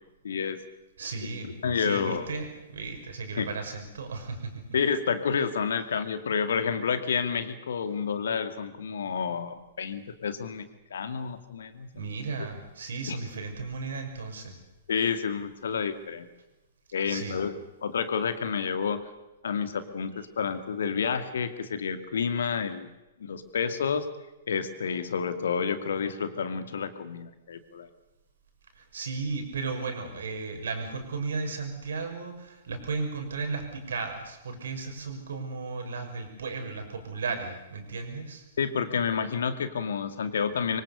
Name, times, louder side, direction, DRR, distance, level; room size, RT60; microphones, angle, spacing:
voice 1, 0.2-0.6 1.4-2.3 3.4-3.5 4.7-10.6 10.9-12.1 13.1-13.2 14.9-16.3 16.9-17.6 17.8-19.0 19.4-22.9 23.2-24.1 24.5-27.9 38.6-40.8, left 6 dB, 60° left, 10 dB, 2.3 m, -29 dB
voice 2, 1.0-4.6 11.9-14.5 17.1-17.4 28.8-38.4, right 4 dB, 60° right, 5 dB, 6.1 m, -35 dB
25.0 x 24.5 x 6.8 m, 0.97 s
figure-of-eight pair, 110°, 0 cm